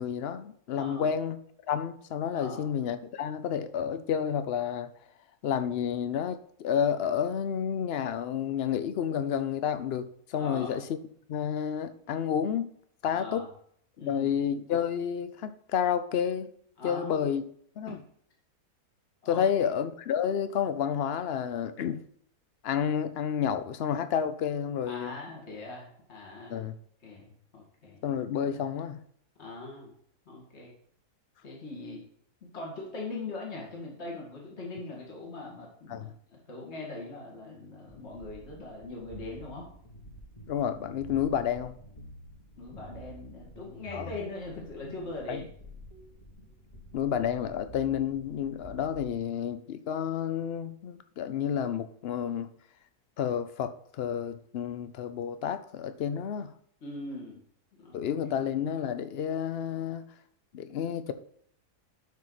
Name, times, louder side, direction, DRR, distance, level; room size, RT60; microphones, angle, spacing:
voice 1, 0.0-1.4 1.7-4.9 5.4-10.8 11.3-12.7 13.0-13.4 14.0-16.5 16.8-17.4 17.8-18.0 19.3-22.0 22.6-25.2 26.5-26.7 28.0-29.0 35.9-36.1 40.5-41.8 43.9-44.1 45.3-45.4 46.9-52.5 53.2-56.5 57.9-60.1 60.5-61.1, left 8 dB, 70° left, 11 dB, 0.5 m, -30 dB
voice 2, 0.7-1.1 2.3-2.6 10.3-10.8 13.1-13.5 14.0-14.3 16.8-17.3 17.9-18.0 19.2-19.7 24.9-26.6 27.0-28.0 29.4-29.9 30.3-30.7 31.4-32.1 32.5-36.1 36.5-39.7 42.6-45.5 56.8-57.4 57.8-58.0, left 2 dB, 45° left, -3 dB, 2.3 m, -41 dB
sound 1, 37.9-49.1, right 1 dB, 25° left, 1.5 m, -49 dB
12.0 x 4.6 x 4.0 m, 0.64 s
omnidirectional pair, 1.7 m